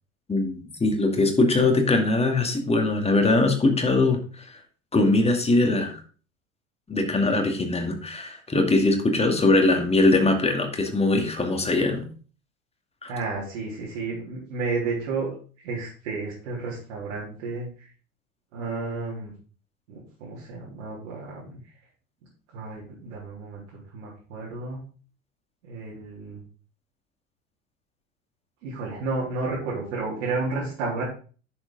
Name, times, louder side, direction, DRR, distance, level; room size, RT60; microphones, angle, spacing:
voice 1, 0.3-4.5 4.9-6.0 6.9-12.0 13.0-13.1, left 2 dB, 15° left, 3 dB, 2.3 m, -21 dB
voice 2, 13.1-15.4 15.6-17.9 18.5-19.3 19.9-21.6 22.5-24.8 25.6-26.4 28.6-31.0, right 3 dB, 65° right, -5 dB, 3.8 m, -32 dB
10.0 x 7.2 x 3.9 m, 0.39 s
figure-of-eight pair, 75°, 39 cm